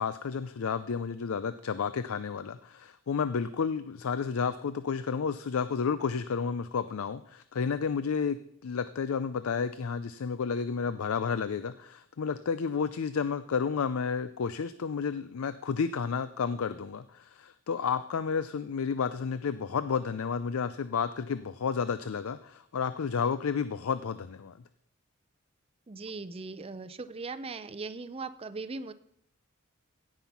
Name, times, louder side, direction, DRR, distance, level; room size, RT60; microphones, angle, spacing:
voice 1, 0.0-24.5, left 6 dB, 75° left, 13 dB, 0.5 m, -31 dB
voice 2, 25.9-28.9, right 3 dB, 25° right, 12 dB, 0.5 m, -39 dB
16.5 x 5.7 x 5.9 m, 0.74 s
head